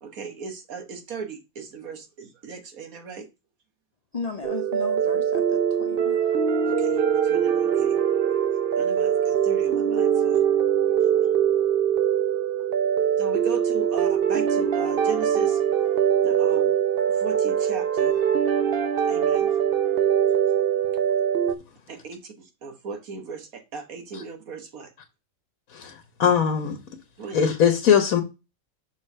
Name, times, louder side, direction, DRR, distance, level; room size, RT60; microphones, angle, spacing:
voice 1, 0.0-3.3 6.7-8.0 8.8-10.4 13.2-15.6 16.0-16.7 17.1-18.1 18.8-19.5 20.0-20.1 20.5-20.9 21.9-24.9 27.2-27.5, right 5 dB, 90° right, 1.7 m, -37 dB
voice 2, 4.1-6.2, left 5 dB, 55° left, 0.4 m, -35 dB
sound 1, 4.4-21.5, right 8 dB, 50° right, 0.8 m, -22 dB
voice 3, 25.7-26.8 27.3-28.2, left 8 dB, 90° left, 1.4 m, -21 dB
6.7 x 3.8 x 5.5 m
omnidirectional pair, 1.4 m